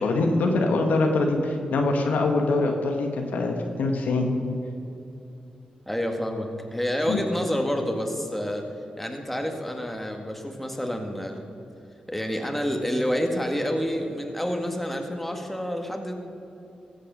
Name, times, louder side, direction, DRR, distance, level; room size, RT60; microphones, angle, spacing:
voice 1, 0.0-4.3 7.1-7.2, left 2 dB, 80° left, 3 dB, 1.4 m, -23 dB
voice 2, 5.9-8.7 9.0-11.4 12.1-16.1, equal, 5° left, 3 dB, 2.0 m, -28 dB
16.0 x 6.7 x 6.4 m, 2.8 s
cardioid pair, 50°, 3 cm